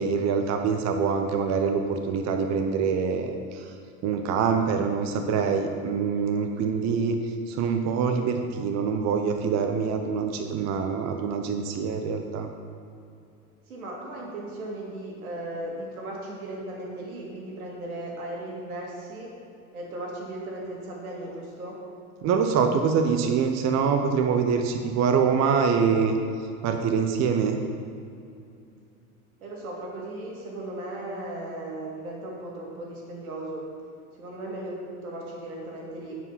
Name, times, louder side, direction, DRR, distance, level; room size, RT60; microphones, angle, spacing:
voice 1, 0.0-3.7 4.0-12.5 22.2-26.2 26.6-27.6, right 6 dB, 40° right, 5 dB, 0.8 m, -25 dB
voice 2, 13.7-19.3 19.7-21.8 29.4-33.7 34.2-36.2, right 1 dB, 90° right, -2 dB, 2.2 m, -36 dB
9.5 x 5.0 x 5.6 m, 2.5 s
hypercardioid pair, 100°, 42 cm